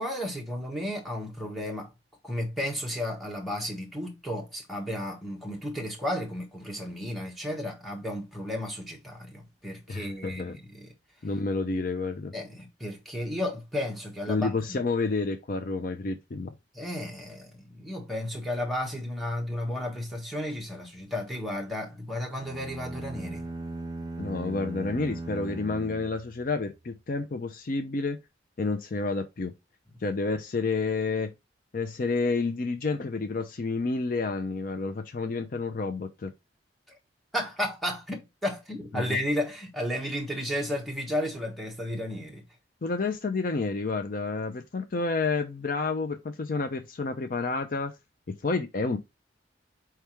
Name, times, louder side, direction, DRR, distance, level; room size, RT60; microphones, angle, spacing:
voice 1, 0.0-1.9 2.2-10.9 12.3-14.8 16.7-23.4 37.3-42.4, left 1 dB, ahead, 1.4 m, -33 dB
voice 2, 9.9-10.6 11.2-12.3 14.3-16.5 24.2-28.2 28.6-29.5 30.0-31.3 31.7-36.3 38.9-39.2 42.8-47.9 48.3-49.0, left 3 dB, 50° left, 0.5 m, -30 dB
sound 1, 22.4-26.8, right 2 dB, 20° right, 0.5 m, -38 dB
4.6 x 3.4 x 3.0 m
head